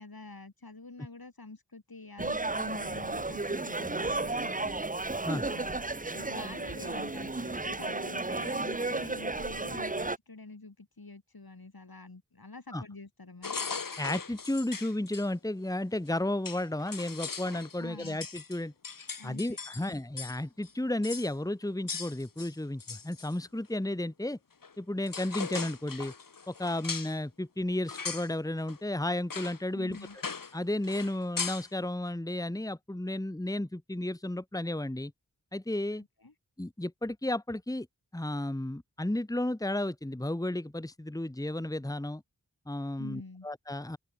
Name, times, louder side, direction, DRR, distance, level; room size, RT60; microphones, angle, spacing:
voice 1, 0.0-4.8 5.4-5.9 6.1-13.6 17.8-18.3 19.2-20.0 29.7-30.2 36.2-36.3 43.0-43.5, left 3 dB, 85° left, 6.7 m, -47 dB
sound 1, 2.2-10.2, right 2 dB, 25° right, 0.8 m, -33 dB
sound 2, 13.4-15.3 16.1-16.2 16.4-20.4 20.6-20.7 21.0-21.3 21.9-23.3 24.6-24.7 25.0-27.2 27.9-28.3 28.7-28.8 29.3-29.6 29.9-30.6 30.8-31.7, left 5 dB, 65° left, 1.0 m, -39 dB
voice 2, 14.0-18.7 19.2-24.4 24.8-26.1 26.5-30.0 30.5-35.1 35.5-36.0 36.6-37.9 38.1-42.2 42.7-44.0, left 1 dB, 10° left, 1.2 m, -33 dB
wide cardioid pair, 40°, 35 cm